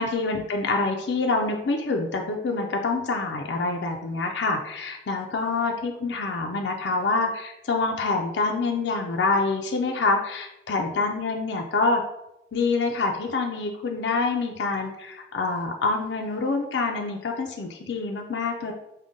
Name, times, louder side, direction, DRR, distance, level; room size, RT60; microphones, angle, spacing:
voice 1, 0.0-12.0 12.5-18.7, left 3 dB, 80° left, 2 dB, 0.4 m, -26 dB
5.1 x 2.2 x 3.6 m, 0.90 s
head